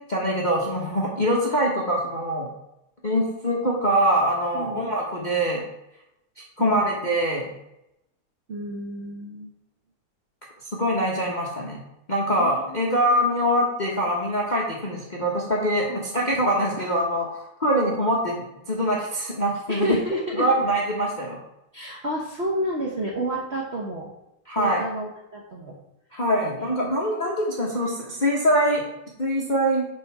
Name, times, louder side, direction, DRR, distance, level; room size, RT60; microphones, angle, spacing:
voice 1, 0.1-2.5 3.0-5.6 6.6-7.4 10.7-11.8 12.1-20.0 20.3-21.4 24.5-24.8 26.1-28.8 29.2-29.9, equal, 35° left, -2 dB, 0.7 m, -24 dB
voice 2, 8.5-9.5 12.4-13.0 15.9-16.0 19.7-20.5 21.7-24.1 24.6-25.8 27.1-27.4, right 1 dB, 45° right, -3 dB, 0.8 m, -30 dB
6.2 x 5.4 x 4.7 m, 0.85 s
omnidirectional pair, 2.4 m